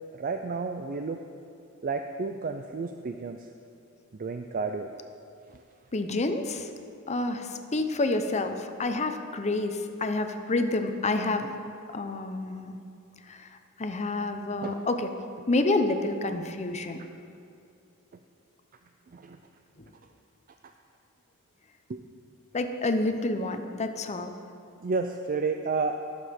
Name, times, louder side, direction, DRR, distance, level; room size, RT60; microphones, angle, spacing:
voice 1, 0.2-1.2 1.8-3.4 4.2-4.9 14.6-14.7 19.1-19.4 21.9-22.0 24.8-26.0, right 4 dB, 40° right, 6 dB, 0.4 m, -31 dB
voice 2, 5.9-6.7 7.1-11.5 11.9-12.8 13.3-13.5 13.8-15.1 15.5-17.0 22.5-24.3, left 2 dB, 30° left, 7 dB, 0.7 m, -28 dB
18.5 x 7.1 x 4.4 m, 2.5 s
head